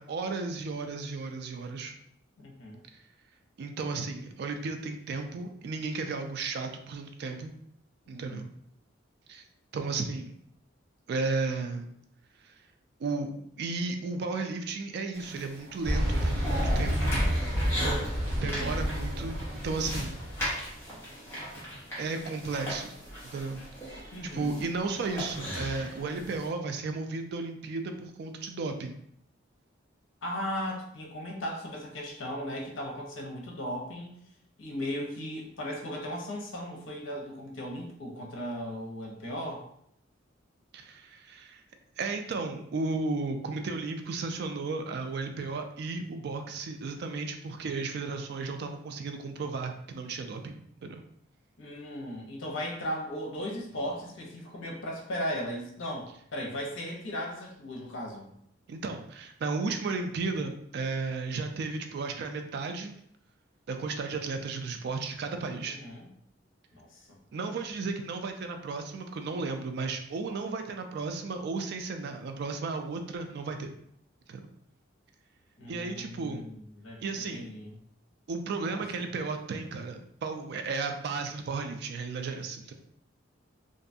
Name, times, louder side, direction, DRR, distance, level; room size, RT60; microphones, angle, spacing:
voice 1, 0.0-1.9 3.6-7.5 8.1-8.5 9.3-9.4 9.7-10.4 11.1-11.9 12.4-12.5 13.0-17.2 18.4-20.2 22.0-22.9 23.2-23.6 24.0-28.9 40.7-41.6 42.0-51.0 58.7-62.9 63.7-65.8 67.3-73.7 74.3-74.4 75.7-76.4 77.0-77.5 78.3-82.7, right 3 dB, 55° right, 5 dB, 0.3 m, -34 dB
voice 2, 2.4-2.8 8.1-8.5 18.3-18.9 24.1-24.6 30.2-34.1 34.6-39.6 51.6-58.3 65.6-66.1 66.7-67.2 75.6-77.0 77.3-77.8 78.6-78.8, equal, 75° left, 0 dB, 0.6 m, -37 dB
sound 1, 15.1-26.5, equal, 15° left, 0.8 m, -38 dB
sound 2, 15.8-20.6, equal, 70° right, 0.8 m, -29 dB
2.6 x 2.2 x 2.5 m, 0.70 s
head